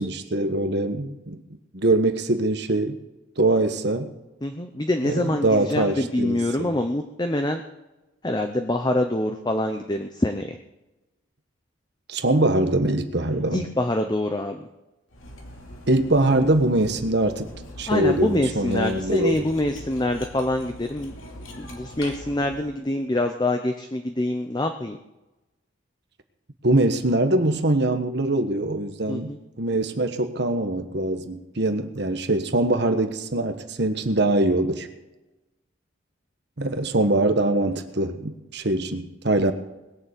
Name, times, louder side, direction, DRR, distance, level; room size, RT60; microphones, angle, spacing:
voice 1, 0.0-1.4 1.7-3.0 3.4-4.1 5.0-6.8 12.1-13.6 15.9-17.5 17.8-19.4 26.6-29.3 29.6-34.9 36.6-39.5, right 2 dB, 55° right, 8 dB, 1.3 m, -23 dB
voice 2, 4.4-7.6 8.2-10.6 13.3-14.7 17.9-21.1 21.6-25.0 29.1-29.4, left 1 dB, 20° left, 6 dB, 0.7 m, -25 dB
Cutlery silverware, 15.1-22.8, left 1 dB, 85° left, 2.8 m, -42 dB
20.5 x 6.9 x 8.3 m, 1.0 s
head